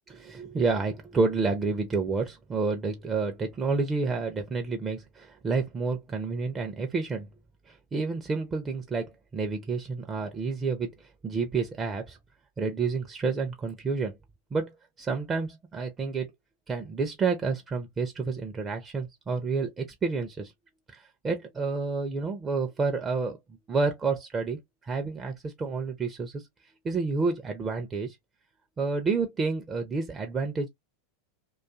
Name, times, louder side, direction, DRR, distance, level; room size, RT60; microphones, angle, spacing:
voice 1, 0.1-7.3 7.7-12.2 12.6-14.1 14.5-16.3 16.7-20.5 20.9-23.4 23.7-26.5 26.8-28.2 28.8-30.7, right 4 dB, 20° right, 0.5 m, -29 dB
2.5 x 2.3 x 2.4 m
figure-of-eight pair, 90°, 0 cm